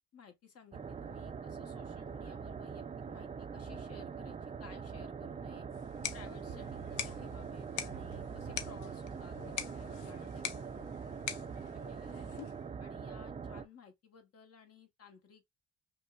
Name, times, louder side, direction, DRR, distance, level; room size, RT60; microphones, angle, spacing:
voice 1, 0.0-5.7 6.1-12.3 12.8-15.5, left 6 dB, 55° left, 1.1 m, -57 dB
sound 1, 0.7-13.7, right 6 dB, 25° right, 0.4 m, -43 dB
sound 2, 5.7-12.7, left 9 dB, 90° left, 0.6 m, -44 dB
sound 3, 6.5-11.2 11.5-11.6, right 9 dB, 75° right, 0.7 m, -52 dB
5.2 x 2.1 x 2.3 m
cardioid pair, 90°, 30 cm